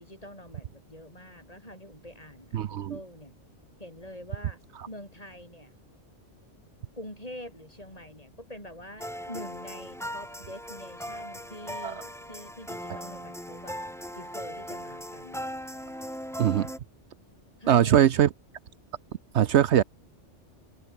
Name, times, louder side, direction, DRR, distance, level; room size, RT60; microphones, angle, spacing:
voice 1, 0.0-3.3 3.8-4.6 4.9-5.7 6.9-13.8 14.1-15.4 16.6-16.8 17.6-18.2, left 1 dB, 30° left, 7.1 m, -45 dB
voice 2, 2.5-3.0 11.8-11.9 16.4-16.7 17.7-18.3 19.3-19.8, right 10 dB, 70° right, 0.9 m, -21 dB
sound 1, 9.0-16.8, equal, ahead, 3.9 m, -39 dB
omnidirectional pair, 1.2 m